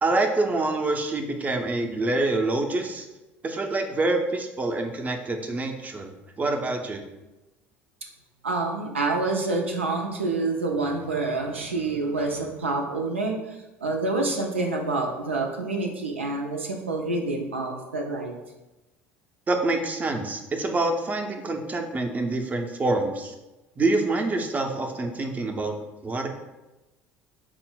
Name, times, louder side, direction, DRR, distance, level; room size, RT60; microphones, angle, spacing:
voice 1, 0.0-3.1 3.4-6.1 6.4-7.0 19.5-23.3 23.8-25.7 26.0-26.3, right 2 dB, 25° right, 4 dB, 0.5 m, -26 dB
voice 2, 8.4-18.3, right 3 dB, 90° right, 0 dB, 0.4 m, -27 dB
4.3 x 2.0 x 3.8 m, 1.0 s
figure-of-eight pair, 65°, 6 cm